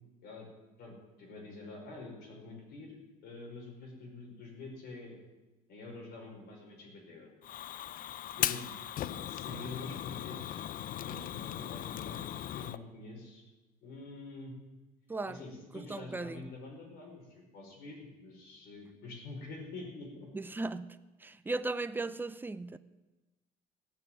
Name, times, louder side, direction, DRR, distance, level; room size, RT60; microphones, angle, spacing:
voice 1, 0.8-5.2 5.7-7.3 8.4-10.7 11.0-13.4 13.8-14.5 15.2-20.3, left 3 dB, 75° left, 5.0 m, -47 dB
Fire, 7.4-12.8, left 12 dB, 55° left, 0.5 m, -38 dB
voice 2, 15.1-15.4 15.7-16.4 20.3-21.0 21.2-22.8, right 3 dB, 10° right, 0.6 m, -37 dB
15.0 x 6.2 x 9.1 m
supercardioid pair, 85°, 17 cm